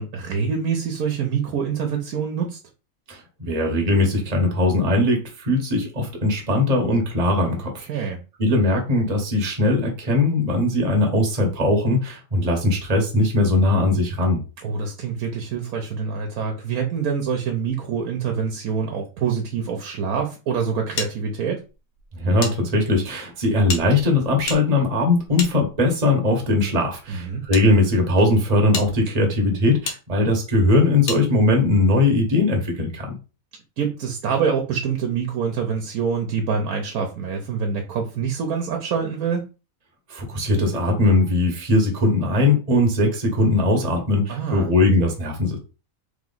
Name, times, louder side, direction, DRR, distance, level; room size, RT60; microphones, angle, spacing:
voice 1, 0.0-2.6 7.8-8.2 14.6-21.6 27.1-27.4 33.8-39.5 44.3-44.7, right 6 dB, 80° right, 1.2 m, -25 dB
voice 2, 3.1-8.1 8.4-14.4 22.2-33.2 40.1-45.6, left 2 dB, 30° right, 1.1 m, -20 dB
sound 1, 21.0-22.5 22.8-22.9 23.6-26.1 26.9-27.6 28.2-28.3 28.7-28.9 29.8-30.0 31.1-31.2, left 4 dB, 85° left, 1.4 m, -32 dB
3.5 x 3.1 x 3.8 m
omnidirectional pair, 1.5 m